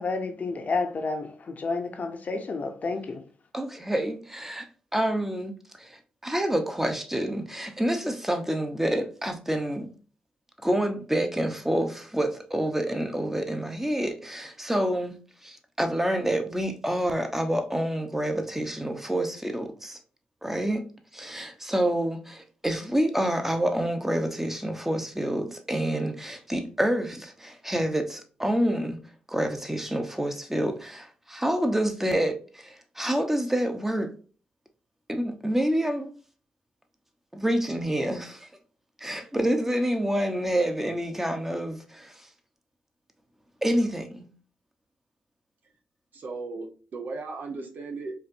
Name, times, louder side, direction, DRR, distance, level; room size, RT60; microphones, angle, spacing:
voice 1, 0.0-3.2, left 3 dB, 50° left, 0.7 m, -30 dB
voice 2, 3.5-4.7 4.9-5.5 5.8-9.9 10.6-20.0 20.4-20.9 21.1-29.0 29.3-34.1 35.1-36.2 37.3-38.5 39.0-42.3 43.6-44.3, right 1 dB, 10° right, 0.8 m, -28 dB
voice 3, 46.1-48.1, right 3 dB, 65° right, 0.8 m, -36 dB
4.2 x 2.6 x 2.6 m
supercardioid pair, 55°, 3 cm